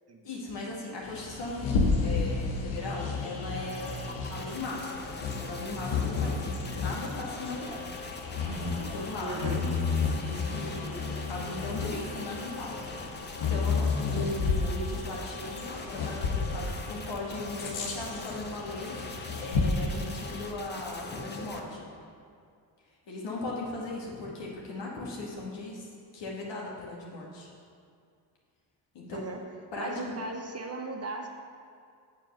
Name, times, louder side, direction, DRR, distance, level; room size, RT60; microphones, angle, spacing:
voice 1, 0.2-1.7 2.0-4.0 4.3-7.9 8.9-9.6 10.1-12.8 13.4-19.0 19.4-21.9 23.1-27.5 28.9-29.2 29.7-30.2, left 2 dB, 60° left, -3 dB, 2.2 m, -38 dB
Bird vocalization bird call bird song, 1.0-20.5, left 4 dB, 80° left, 1.2 m, -32 dB
sound 1, 3.5-21.6, left 3 dB, 20° left, 0.9 m, -42 dB
voice 2, 9.2-9.6 29.1-29.4 29.8-31.3, right 3 dB, 30° right, 3 dB, 0.9 m, -37 dB
7.3 x 4.6 x 6.4 m, 2.3 s
hypercardioid pair, 55°, 48 cm